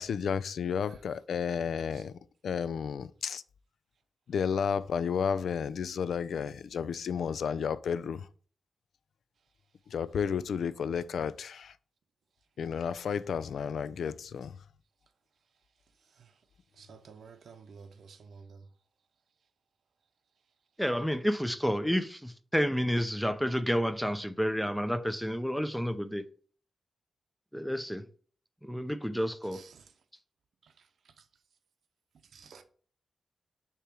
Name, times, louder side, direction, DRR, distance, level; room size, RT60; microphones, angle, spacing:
voice 1, 0.0-2.1 2.4-3.4 4.3-8.3 9.9-11.7 12.6-14.5, left 7 dB, 80° left, 0.3 m, -32 dB
voice 2, 1.6-2.0 14.0-14.1 16.1-16.3 16.7-18.7 29.5-29.9 30.6-31.2 32.3-32.6, right 5 dB, 80° right, 0.6 m, -53 dB
voice 3, 20.8-26.2 27.5-28.0 28.6-29.6, equal, ahead, 0.5 m, -30 dB
6.7 x 3.0 x 4.7 m
cardioid pair, 90°, 0 cm